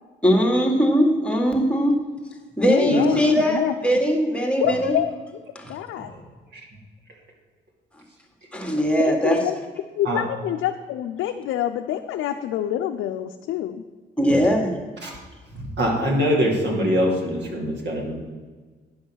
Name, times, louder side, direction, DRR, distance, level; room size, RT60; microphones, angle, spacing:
voice 1, 0.2-2.0 2.6-5.0 5.5-5.8 8.5-9.4 14.2-14.8, equal, 5° left, 2 dB, 1.8 m, -20 dB
voice 2, 2.7-3.7 4.6-5.1 5.7-6.1 9.0-9.5 10.0-13.8, left 11 dB, 85° left, 5 dB, 0.5 m, -26 dB
voice 3, 15.5-18.1, equal, 60° right, -1 dB, 2.7 m, -23 dB
10.0 x 5.4 x 6.2 m, 1.4 s
cardioid pair, 90°, 20 cm